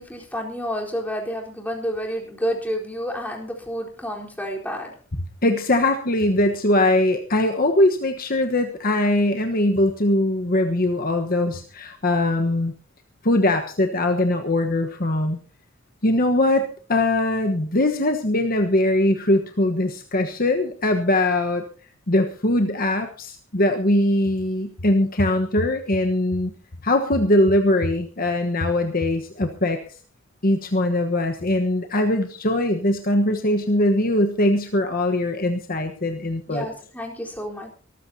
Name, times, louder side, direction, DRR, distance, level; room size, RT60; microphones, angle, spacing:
voice 1, 0.0-5.0 36.5-37.7, equal, 10° left, -1 dB, 4.1 m, -30 dB
voice 2, 5.4-12.7 13.2-15.4 16.0-21.6 22.1-26.5 26.8-29.8 30.4-36.7, left 1 dB, 45° left, 5 dB, 1.3 m, -21 dB
24.5 x 14.0 x 2.8 m, 0.39 s
head